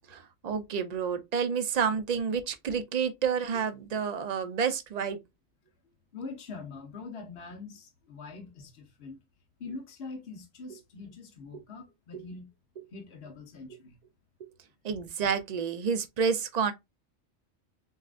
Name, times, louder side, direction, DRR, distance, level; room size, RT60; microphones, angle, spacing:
voice 1, 0.1-5.2 11.5-11.6 12.1-12.2 14.4-14.5 14.8-16.7, right 6 dB, 45° right, 0.6 m, -29 dB
voice 2, 6.1-9.2 9.6-12.5 12.9-14.0, left 4 dB, 60° left, 1.2 m, -43 dB
7.1 x 2.4 x 2.4 m
omnidirectional pair, 1.2 m